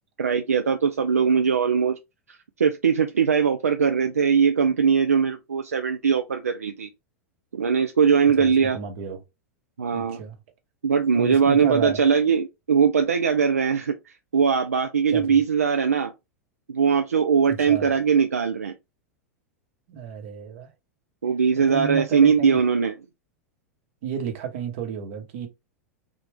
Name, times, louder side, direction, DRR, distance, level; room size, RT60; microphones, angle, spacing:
voice 1, 0.2-2.0 2.3-6.9 7.5-8.8 9.8-10.2 10.8-16.1 16.7-18.7 21.2-22.9, right 6 dB, 85° right, 0.3 m, -21 dB
voice 2, 8.4-9.2 9.9-10.3 11.2-12.0 15.1-15.4 17.5-17.9 19.9-20.7 21.6-22.6 24.0-25.5, right 7 dB, 60° right, 1.0 m, -32 dB
3.4 x 2.4 x 3.3 m
figure-of-eight pair, 90°, 8 cm